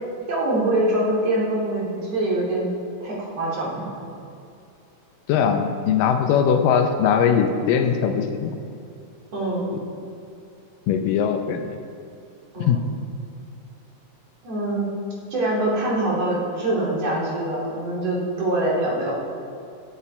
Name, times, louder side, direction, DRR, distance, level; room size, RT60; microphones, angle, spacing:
voice 1, 0.3-2.7 3.0-4.0 9.3-9.7 12.5-12.8 14.4-14.9 15.3-19.1, right 1 dB, 50° right, -5 dB, 3.2 m, -24 dB
voice 2, 5.3-8.6 10.9-11.7 12.7-12.8, left 7 dB, 80° left, 6 dB, 2.3 m, -20 dB
15.5 x 8.7 x 4.3 m, 2.5 s
omnidirectional pair, 4.0 m